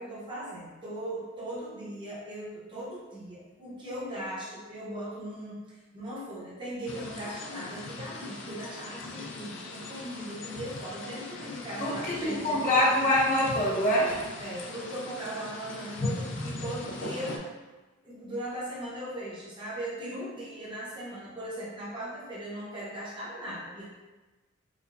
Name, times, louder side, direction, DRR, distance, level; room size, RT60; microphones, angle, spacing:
voice 1, 0.0-5.6 5.9-12.6 14.4-17.5 18.0-23.9, right 1 dB, 25° right, -7 dB, 0.8 m, -38 dB
sound 1, 6.9-17.4, left 2 dB, 60° left, 0.5 m, -39 dB
voice 2, 11.8-14.2, left 1 dB, 40° left, -6 dB, 0.8 m, -25 dB
4.7 x 2.2 x 2.6 m, 1.2 s
head